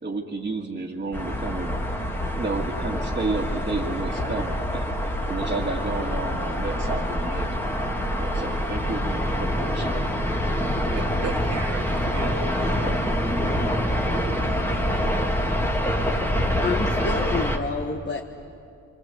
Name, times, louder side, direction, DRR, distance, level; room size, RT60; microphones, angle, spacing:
voice 1, 0.0-1.8 2.3-7.7 8.2-10.1, right 3 dB, 30° right, -4 dB, 2.1 m, -31 dB
sound 1, 1.1-17.6, equal, 5° left, 2.1 m, -26 dB
voice 2, 10.9-15.3, right 4 dB, 60° right, -1 dB, 1.7 m, -37 dB
voice 3, 16.6-18.2, left 4 dB, 35° left, 2 dB, 1.4 m, -28 dB
28.5 x 25.5 x 8.3 m, 2.7 s
wide cardioid pair, 130°, 30 cm